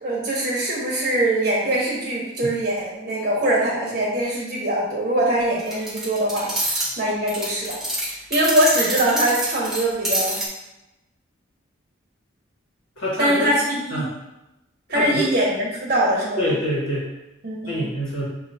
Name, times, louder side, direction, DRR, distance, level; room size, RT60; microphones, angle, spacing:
voice 1, 0.0-7.8 8.3-10.4 13.2-14.0 14.9-16.5 17.4-17.9, right 1 dB, 40° right, -4 dB, 0.9 m, -22 dB
sound 1, 5.6-6.9 7.3-10.5, right 1 dB, ahead, 0.8 m, -26 dB
voice 2, 13.0-13.5 13.9-14.1 14.9-15.2 16.4-17.1 17.7-18.2, equal, 75° left, -6 dB, 1.4 m, -25 dB
6.2 x 2.6 x 2.7 m, 0.95 s
head